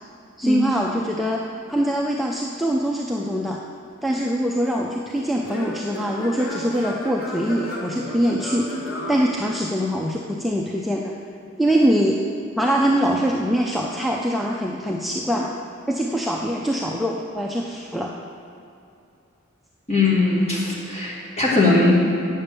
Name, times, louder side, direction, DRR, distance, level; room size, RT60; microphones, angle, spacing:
voice 1, 0.4-3.6 4.0-8.7 9.1-11.1 11.6-12.2 12.6-15.5 15.9-18.1, equal, ahead, -2 dB, 0.4 m, -23 dB
Singing / Plucked string instrument, 4.2-10.0, equal, 70° left, 2.3 m, -34 dB
voice 2, 19.9-22.0, left 3 dB, 30° left, -5 dB, 2.1 m, -19 dB
8.8 x 7.1 x 6.8 m, 2.6 s
head